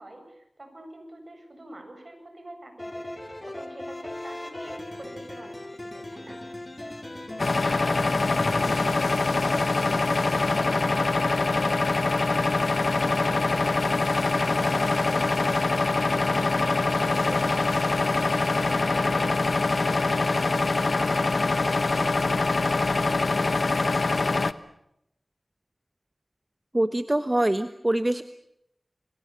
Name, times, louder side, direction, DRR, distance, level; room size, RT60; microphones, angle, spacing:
voice 1, 0.0-3.1 3.5-6.4 10.1-20.6 20.9-21.7, right 1 dB, 55° right, 6 dB, 7.7 m, -45 dB
sound 1, 2.8-10.8, left 1 dB, 35° left, 5.4 m, -38 dB
sound 2, 7.4-24.5, left 3 dB, 80° left, 1.1 m, -24 dB
voice 2, 26.7-28.2, right 1 dB, 25° right, 10 dB, 1.3 m, -24 dB
30.0 x 23.5 x 7.0 m, 0.79 s
wide cardioid pair, 45°, 0 cm